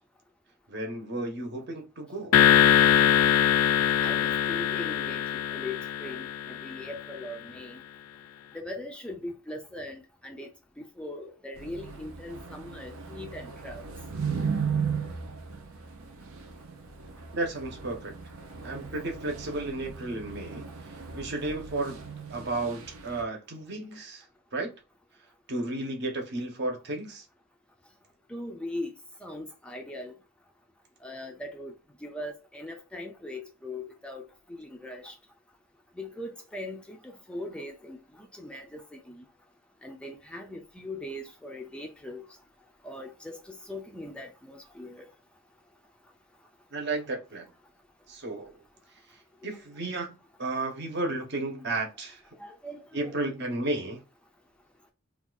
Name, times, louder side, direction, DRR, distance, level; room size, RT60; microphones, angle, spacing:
voice 1, 0.7-2.3 17.3-18.1 18.6-22.0 22.3-24.2 24.5-24.7 25.5-27.2 46.7-47.5 48.1-48.6 49.4-52.2 52.9-54.0, right 2 dB, 55° right, 0.8 m, -33 dB
sound 1, 2.3-6.8, left 10 dB, 90° left, 0.3 m, -22 dB
voice 2, 4.0-7.8 8.5-10.5 10.8-13.9 28.3-28.9 29.2-30.1 31.0-31.7 32.0-34.2 34.6-35.1 36.0-39.2 39.8-42.3 42.8-45.1 52.4-53.3, left 1 dB, 5° left, 0.3 m, -40 dB
sound 2, 11.5-23.2, right 6 dB, 90° right, 0.7 m, -36 dB
2.7 x 2.3 x 3.8 m
head